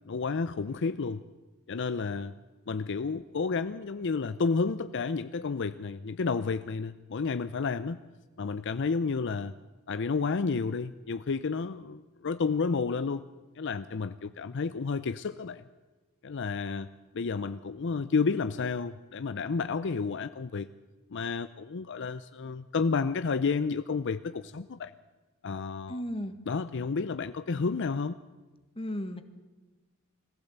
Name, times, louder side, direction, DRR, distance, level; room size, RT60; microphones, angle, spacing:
voice 1, 0.1-1.2 1.7-2.3 2.7-8.0 8.4-9.5 9.9-13.2 13.6-15.6 16.2-16.9 17.1-20.7 21.1-24.9 25.4-26.0 26.5-28.2, left 4 dB, 55° left, 12 dB, 0.5 m, -31 dB
voice 2, 25.9-26.3 28.7-29.2, equal, 25° left, 9 dB, 1.4 m, -34 dB
21.5 x 15.5 x 8.0 m, 1.2 s
head